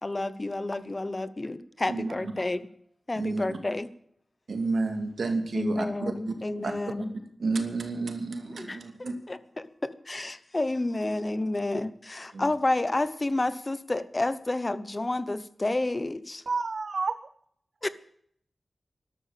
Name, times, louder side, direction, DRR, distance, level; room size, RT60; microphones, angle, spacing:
voice 1, 0.0-2.6 3.1-3.9 5.5-7.1 8.5-16.4 17.8-17.9, left 2 dB, 30° left, 0.9 m, -30 dB
voice 2, 1.9-2.4 3.1-3.6 4.5-6.7 7.0-7.1 7.4-9.2 12.3-12.5, right 3 dB, 80° right, 2.5 m, -31 dB
voice 3, 16.5-17.1, right 4 dB, 65° right, 0.6 m, -29 dB
13.5 x 12.0 x 7.4 m
wide cardioid pair, 105°, 0 cm